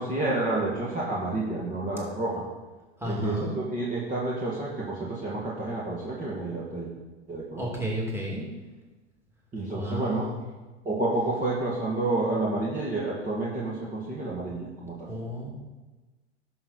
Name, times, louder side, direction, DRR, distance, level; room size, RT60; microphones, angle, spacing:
voice 1, 0.0-2.5 3.1-6.9 7.3-7.7 9.5-10.3 10.9-15.1, right 2 dB, 25° right, -5 dB, 2.0 m, -29 dB
voice 2, 3.0-3.5 7.6-8.4 9.7-10.3 15.1-15.5, equal, 5° right, -3 dB, 2.7 m, -32 dB
11.0 x 6.4 x 4.3 m, 1.2 s
hypercardioid pair, 100°, 34 cm